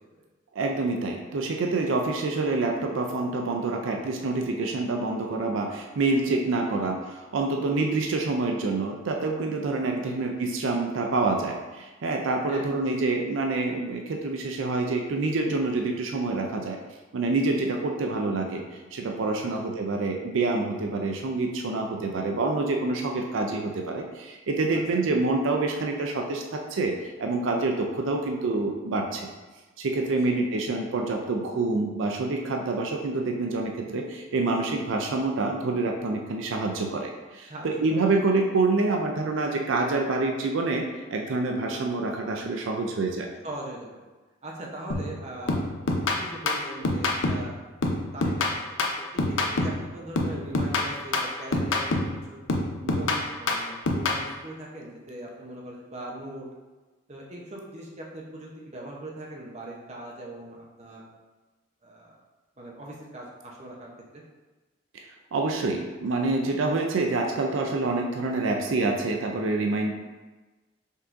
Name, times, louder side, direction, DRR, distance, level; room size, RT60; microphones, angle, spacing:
voice 1, 0.6-16.8 17.1-18.6 18.9-29.3 29.8-43.3 64.9-69.9, right 3 dB, 85° right, 2 dB, 0.4 m, -27 dB
voice 2, 37.5-38.1 41.7-41.9 43.4-44.0 44.4-45.6 46.2-47.6 48.1-52.4 52.8-56.5 57.1-61.0 61.8-62.2 62.6-64.2, right 1 dB, 35° right, -2 dB, 0.8 m, -40 dB
sound 1, 44.9-45.2 45.5-47.5 47.8-49.9 50.2-52.2 52.5-54.2, left 2 dB, 85° left, 0.6 m, -26 dB
5.4 x 3.6 x 2.5 m, 1.2 s
head